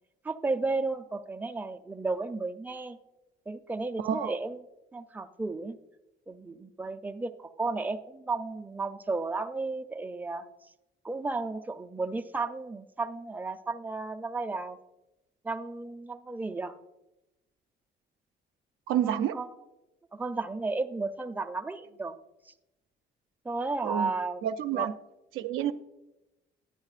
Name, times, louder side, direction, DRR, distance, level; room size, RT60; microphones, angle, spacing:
voice 1, 0.2-3.0 3.5-4.7 4.9-5.7 6.3-10.4 11.0-14.8 15.4-16.7 19.0-19.5 20.1-22.1 22.5-22.6 23.4-24.9, right 3 dB, 10° right, 7 dB, 0.5 m, -33 dB
voice 2, 4.0-4.3 18.9-19.4 23.8-24.1 24.4-24.9 25.3-25.7, right 10 dB, 85° right, 9 dB, 0.5 m, -29 dB
10.5 x 9.6 x 2.4 m, 0.95 s
cardioid pair, 90°, 20 cm